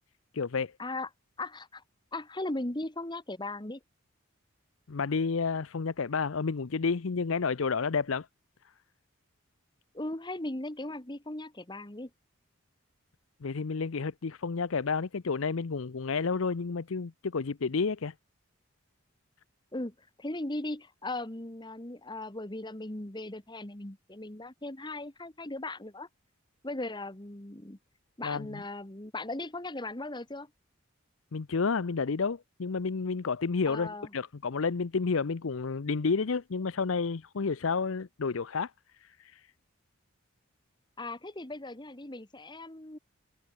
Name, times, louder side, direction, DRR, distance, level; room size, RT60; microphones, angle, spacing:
voice 1, 0.3-0.7 4.9-8.3 13.4-18.1 28.2-28.6 31.3-38.7, left 4 dB, 70° left, 0.6 m, -30 dB
voice 2, 1.4-1.8 2.1-3.8 9.9-12.1 19.7-26.1 26.6-27.8 28.2-30.5 33.6-34.1 41.0-43.0, left 2 dB, 20° left, 1.5 m, -38 dB
head